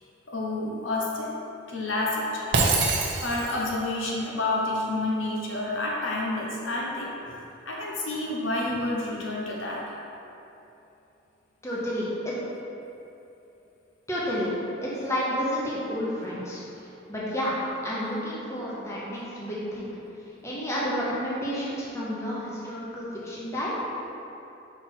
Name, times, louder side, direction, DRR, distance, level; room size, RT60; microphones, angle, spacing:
voice 1, 0.3-1.3 1.7-7.1 7.7-9.8, left 2 dB, 75° left, -3 dB, 1.0 m, -29 dB
Shatter, 2.5-3.7, right 3 dB, 60° right, 0.7 m, -24 dB
voice 2, 11.6-12.3 14.1-14.5 14.8-17.5 17.8-19.9 20.4-23.8, equal, 15° left, -7 dB, 0.9 m, -30 dB
5.6 x 4.1 x 4.5 m, 2.8 s
head